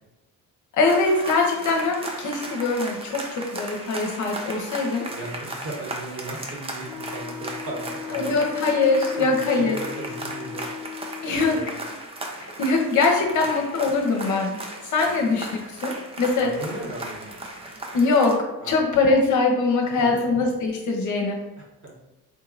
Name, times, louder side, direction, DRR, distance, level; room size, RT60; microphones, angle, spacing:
voice 1, 0.7-5.1 8.1-9.8 11.2-11.6 12.4-16.5 17.9-21.4, left 3 dB, 40° left, 2 dB, 0.6 m, -22 dB
sound 1, 0.8-18.4, right 2 dB, 15° right, 0.5 m, -36 dB
voice 2, 5.1-8.3 9.2-9.3 9.5-10.6 11.2-11.8 13.3-13.5 15.0-15.3 16.4-17.3 18.6-18.8 20.0-20.2 21.8-21.9, right 2 dB, 30° right, -2 dB, 1.1 m, -36 dB
Wind instrument woodwind instrument, 6.8-11.7, left 7 dB, 80° right, 0.9 m, -38 dB
3.7 x 2.7 x 2.5 m, 1.0 s
figure-of-eight pair, 45°, 46 cm